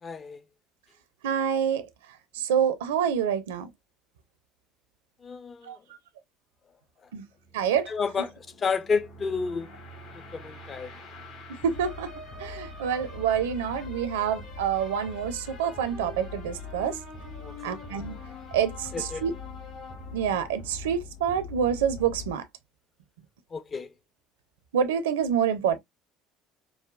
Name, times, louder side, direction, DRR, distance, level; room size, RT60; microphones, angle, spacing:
voice 1, 0.0-0.4 5.2-5.8 7.9-9.7 10.1-10.9 17.4-17.8 18.9-19.2 23.5-23.9, left 5 dB, 30° left, 0.6 m, -31 dB
voice 2, 1.2-1.9 2.3-3.7 5.6-5.8 7.1-7.2 7.5-7.9 11.6-12.1 12.4-17.0 17.6-18.1 18.5-19.3 20.1-22.4 24.7-25.8, right 8 dB, 70° right, 0.5 m, -27 dB
sound 1, 7.1-22.3, left 3 dB, 50° left, 1.8 m, -42 dB
4.7 x 2.2 x 2.3 m
figure-of-eight pair, 60°, 0 cm